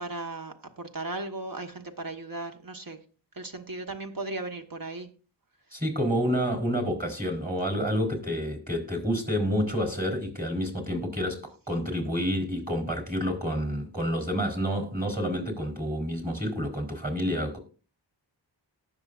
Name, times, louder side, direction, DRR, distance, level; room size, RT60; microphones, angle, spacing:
voice 1, 0.0-3.0 3.4-5.1, right 2 dB, 45° right, 1.5 m, -36 dB
voice 2, 5.7-17.6, equal, 20° right, 4.0 m, -29 dB
18.5 x 6.3 x 2.6 m
cardioid pair, 50°, 47 cm